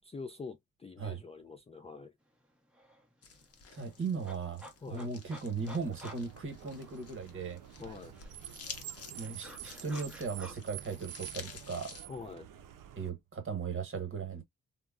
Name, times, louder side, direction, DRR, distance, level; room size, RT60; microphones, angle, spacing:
voice 1, 0.0-2.1 4.8-5.1 7.8-8.1 12.1-12.5, left 4 dB, 20° left, 0.3 m, -45 dB
sound 1, 2.4-2.5 2.7-7.4 7.7-10.6, equal, 5° right, 0.7 m, -53 dB
sound 2, 3.2-12.0, left 6 dB, 50° left, 0.7 m, -51 dB
voice 2, 3.7-7.6 9.2-11.9 13.0-14.4, right 5 dB, 40° right, 1.1 m, -37 dB
Car, 5.6-13.1, right 11 dB, 80° right, 0.5 m, -49 dB
3.3 x 2.1 x 2.2 m
wide cardioid pair, 140°, 32 cm